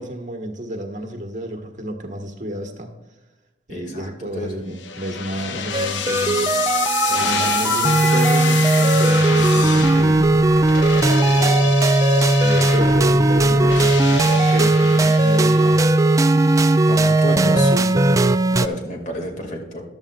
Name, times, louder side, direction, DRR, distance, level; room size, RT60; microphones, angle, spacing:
voice 1, 0.0-2.9 3.7-6.5 7.1-10.3 12.4-15.9 17.3-18.3, right 1 dB, 45° right, 3 dB, 1.6 m, -30 dB
voice 2, 3.7-4.6 5.3-5.6 7.1-7.7 10.9-11.8 12.7-12.9 13.5-13.8 16.9-17.7 18.5-19.8, left 1 dB, 45° left, 1 dB, 2.2 m, -32 dB
sound 1, 4.8-16.1, left 5 dB, 75° left, 0.7 m, -26 dB
sound 2, 5.7-18.7, right 2 dB, 20° right, 0.3 m, -17 dB
14.5 x 11.5 x 2.5 m, 1.1 s
head